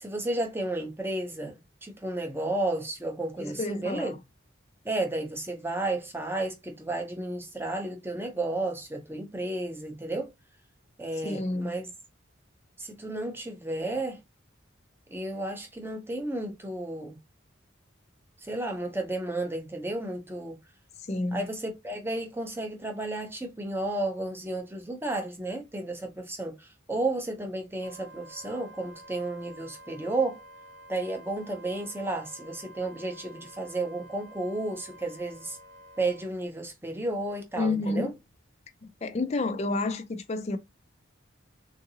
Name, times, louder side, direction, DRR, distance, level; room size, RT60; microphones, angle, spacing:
voice 1, 0.0-4.1 4.8-10.3 11.0-11.9 12.8-14.2 15.1-17.2 18.4-20.6 21.3-30.4 30.9-35.6 36.0-38.1, right 2 dB, 10° right, 0.6 m, -32 dB
voice 2, 3.4-4.2 11.2-11.8 21.0-21.4 37.6-38.1 38.8-40.6, left 2 dB, 30° left, 0.4 m, -30 dB
Wind instrument woodwind instrument, 27.8-36.3, right 1 dB, 55° right, 0.8 m, -50 dB
3.7 x 2.5 x 2.7 m
head